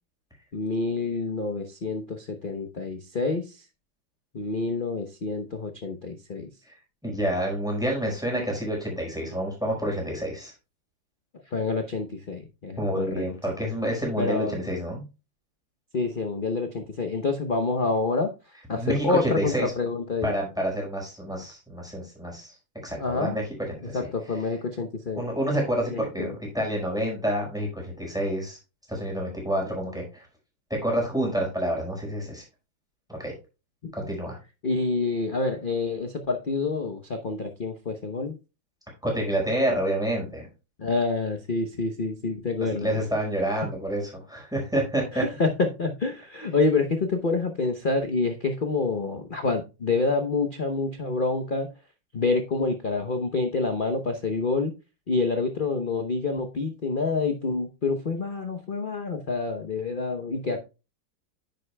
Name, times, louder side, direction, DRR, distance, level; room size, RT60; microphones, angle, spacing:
voice 1, 0.5-3.6 4.3-6.5 11.5-13.3 14.2-14.6 15.9-20.3 23.0-23.4 23.9-25.2 25.9-26.3 33.8-33.9 34.6-38.4 40.8-43.0 45.1-51.7 52.1-54.7 55.1-60.6, left 3 dB, 50° left, 6 dB, 0.6 m, -27 dB
voice 2, 7.0-10.5 12.8-15.0 18.7-19.7 20.2-22.5 22.8-23.4 23.7-24.1 25.1-28.6 28.9-30.2 30.7-32.4 33.1-33.3 33.9-34.4 39.0-40.5 42.6-45.2, right 1 dB, ahead, -1 dB, 4.8 m, -28 dB
10.0 x 9.1 x 2.2 m, 0.29 s
omnidirectional pair, 2.2 m